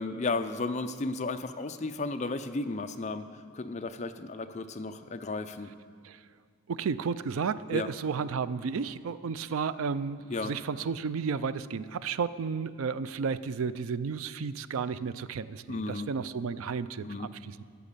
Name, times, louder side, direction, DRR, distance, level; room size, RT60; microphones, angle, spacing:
voice 1, 0.0-5.7 7.7-7.9 10.3-10.5 15.7-16.1 17.0-17.3, left 3 dB, 35° left, 8 dB, 0.5 m, -34 dB
voice 2, 6.7-17.6, right 5 dB, 75° right, 15 dB, 0.4 m, -32 dB
14.0 x 8.2 x 6.7 m, 2.1 s
head